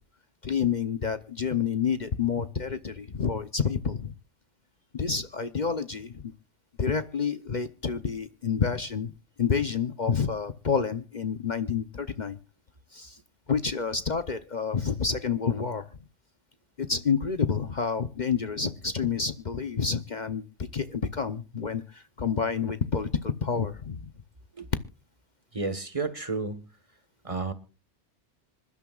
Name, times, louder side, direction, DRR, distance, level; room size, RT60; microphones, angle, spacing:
voice 1, 0.4-4.1 4.9-6.2 6.8-9.1 9.4-12.4 12.9-13.2 13.5-15.9 16.8-20.4 20.7-24.1, left 6 dB, 45° left, 10 dB, 0.9 m, -28 dB
voice 2, 25.5-26.6 27.2-27.5, right 4 dB, 30° right, 11 dB, 1.4 m, -31 dB
26.0 x 12.0 x 2.4 m, 0.33 s
omnidirectional pair, 1.1 m